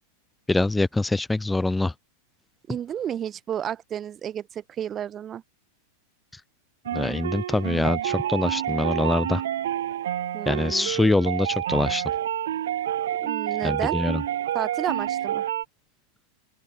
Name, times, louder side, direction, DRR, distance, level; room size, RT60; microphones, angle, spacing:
voice 1, 0.5-1.9 6.9-9.4 10.5-12.0 13.6-14.2, left 2 dB, 5° left, 0.5 m, -24 dB
voice 2, 2.7-5.4 10.3-10.9 13.2-14.0 14.5-15.4, right 9 dB, 25° right, 1.3 m, -32 dB
sound 1, 6.9-15.7, right 11 dB, 60° right, 2.1 m, -28 dB
open air
figure-of-eight pair, 90°, 0 cm